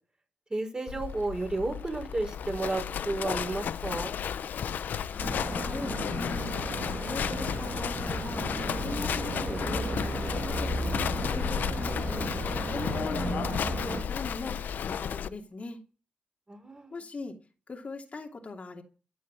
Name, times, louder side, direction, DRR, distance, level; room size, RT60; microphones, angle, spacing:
voice 1, 0.5-4.1 16.5-17.0, right 2 dB, 30° right, 5.6 m, -32 dB
Livestock farm animals working animals, 0.9-15.3, left 8 dB, 85° left, 0.6 m, -33 dB
voice 2, 5.1-12.3 12.7-15.8 16.9-17.4 17.7-18.8, left 3 dB, 50° left, 2.7 m, -40 dB
sound 1, 5.2-14.0, right 3 dB, 50° right, 2.5 m, -35 dB
14.5 x 6.4 x 9.8 m
cardioid pair, 60°, 3 cm